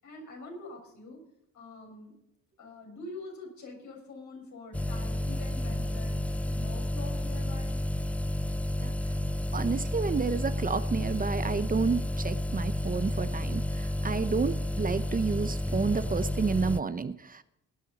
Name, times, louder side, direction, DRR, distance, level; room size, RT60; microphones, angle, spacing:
voice 1, 0.0-1.2 1.5-2.2 2.6-6.2 6.4-7.8, left 2 dB, 70° left, 0 dB, 6.8 m, -45 dB
sound 1, 4.7-16.8, left 1 dB, 5° left, 0.4 m, -31 dB
voice 2, 9.5-17.4, right 5 dB, 30° right, 12 dB, 0.8 m, -30 dB
18.0 x 10.0 x 4.1 m, 0.81 s
cardioid pair, 90°, 30 cm